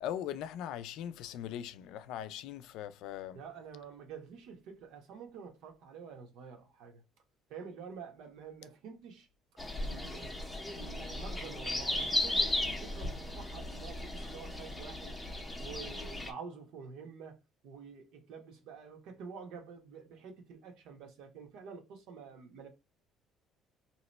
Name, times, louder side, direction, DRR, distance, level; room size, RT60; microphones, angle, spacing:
voice 1, 0.0-3.4, left 10 dB, 70° left, 0.3 m, -40 dB
voice 2, 3.3-7.0 7.5-9.3 9.8-10.4 10.7-15.2 15.6-17.4 17.6-22.7, right 6 dB, 70° right, 1.0 m, -48 dB
sound 1, 9.6-16.3, left 1 dB, 5° left, 0.6 m, -36 dB
2.8 x 2.1 x 4.0 m
cardioid pair, 170°, 0 cm